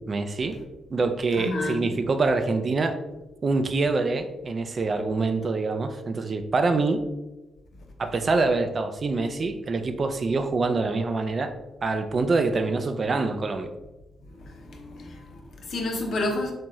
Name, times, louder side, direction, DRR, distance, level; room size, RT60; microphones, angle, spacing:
voice 1, 0.1-0.6 0.9-2.9 3.4-7.0 8.0-11.5 11.8-13.7, right 3 dB, 45° right, 8 dB, 0.4 m, -25 dB
voice 2, 1.4-1.9 14.3-16.5, left 2 dB, 60° left, 1 dB, 0.7 m, -30 dB
3.5 x 2.6 x 3.0 m, 1.1 s
hypercardioid pair, 40°, 0 cm